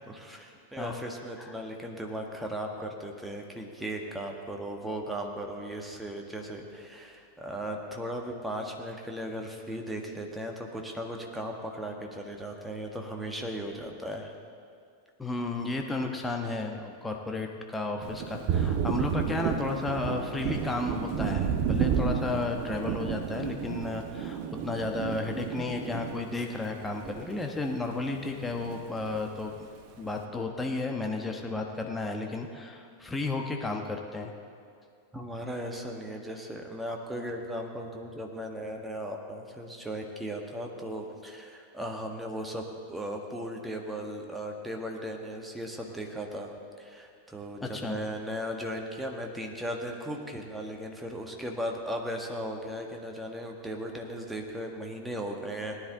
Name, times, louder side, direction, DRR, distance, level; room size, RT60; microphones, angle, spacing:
voice 1, 0.1-14.3 35.1-55.8, equal, 5° right, 1 dB, 1.6 m, -37 dB
voice 2, 15.2-29.7 30.0-34.3 47.6-48.0, left 3 dB, 10° left, 2 dB, 1.1 m, -33 dB
Thunder, 18.0-27.8 28.1-29.2, right 7 dB, 45° right, 0.9 m, -32 dB
19.0 x 10.0 x 3.9 m, 2.4 s
figure-of-eight pair, 90°, 0 cm